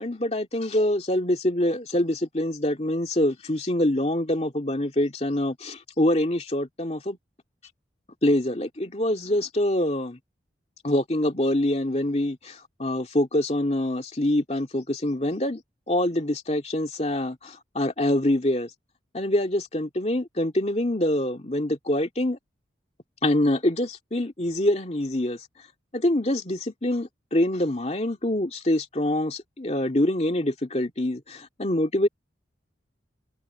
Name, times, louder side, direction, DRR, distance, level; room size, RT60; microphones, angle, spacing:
voice 1, 0.0-7.2 8.2-10.2 10.8-15.6 15.9-18.7 19.1-22.4 23.2-25.4 25.9-32.1, left 1 dB, 35° left, 2.3 m, -25 dB
head